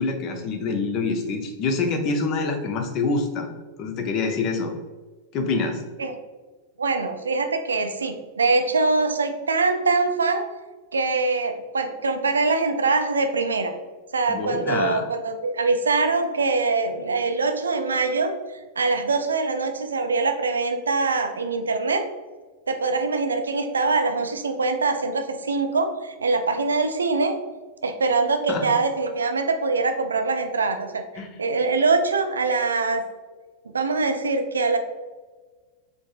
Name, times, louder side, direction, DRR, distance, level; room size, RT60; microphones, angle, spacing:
voice 1, 0.0-3.5 3.8-4.7 5.3-5.8 14.3-15.0 28.5-28.7 31.2-31.3, left 3 dB, 35° left, 4 dB, 0.6 m, -26 dB
voice 2, 6.8-10.5 10.9-13.7 14.1-18.3 18.8-22.0 22.7-27.3 27.8-31.0 31.4-33.0 33.7-34.8, right 3 dB, 70° right, 7 dB, 0.3 m, -23 dB
3.8 x 3.4 x 2.4 m, 1.3 s
figure-of-eight pair, 90°, 0 cm